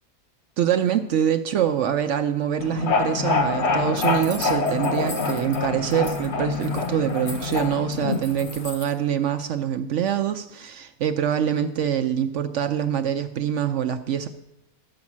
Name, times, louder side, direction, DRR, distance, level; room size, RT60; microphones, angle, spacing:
voice 1, 0.6-14.3, right 9 dB, 70° right, 9 dB, 0.7 m, -25 dB
sound 1, 2.6-8.7, left 4 dB, 50° left, 0.9 m, -26 dB
sound 2, 4.0-5.6 5.9-6.3 6.5-8.9, left 3 dB, 75° left, 1.9 m, -39 dB
12.0 x 5.3 x 7.2 m, 0.82 s
omnidirectional pair, 1.7 m